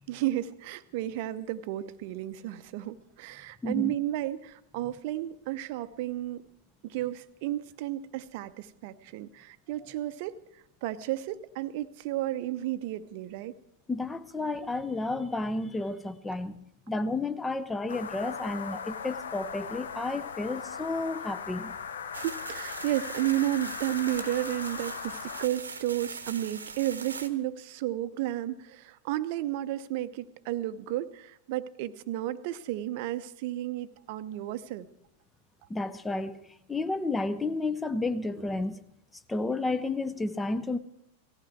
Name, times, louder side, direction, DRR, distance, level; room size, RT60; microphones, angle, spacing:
voice 1, 0.1-6.4 6.8-13.5 22.1-34.9, right 14 dB, 50° right, 0.7 m, -33 dB
voice 2, 3.6-3.9 13.9-21.7 35.7-38.8 39.3-40.8, left 2 dB, 10° left, 0.7 m, -32 dB
sound 1, 17.9-25.5, left 6 dB, 65° left, 0.8 m, -39 dB
sound 2, 22.1-27.3, right 4 dB, 75° right, 1.0 m, -41 dB
18.0 x 15.0 x 4.6 m
figure-of-eight pair, 90°, 0 cm